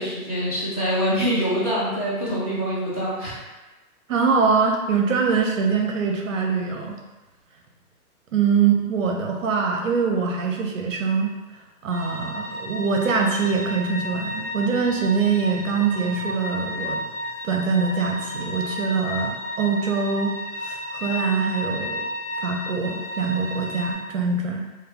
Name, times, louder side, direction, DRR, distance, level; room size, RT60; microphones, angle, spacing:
voice 1, 0.0-3.3, equal, 25° left, -9 dB, 0.6 m, -25 dB
voice 2, 4.1-7.0 8.3-11.3 11.8-17.0 17.4-20.3 20.6-22.0 22.4-24.6, right 5 dB, 60° right, 1 dB, 0.5 m, -23 dB
sound 1, 11.9-23.9, equal, 20° right, 0.7 m, -32 dB
2.2 x 2.2 x 3.4 m, 1.1 s
hypercardioid pair, 160°, 45 cm